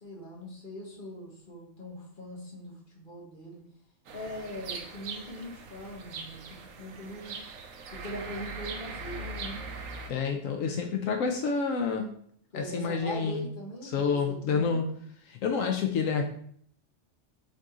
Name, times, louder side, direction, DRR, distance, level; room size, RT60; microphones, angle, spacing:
voice 1, 0.0-3.6 4.1-7.4 7.9-9.6 12.5-14.8, left 1 dB, 40° left, -2 dB, 1.7 m, -41 dB
sound 1, 4.1-10.1, right 4 dB, 90° right, 1.2 m, -41 dB
voice 2, 10.1-12.1 12.5-13.4 13.8-14.8 15.3-16.3, left 5 dB, 80° left, 3 dB, 1.1 m, -28 dB
6.4 x 4.0 x 3.7 m, 0.62 s
omnidirectional pair, 1.3 m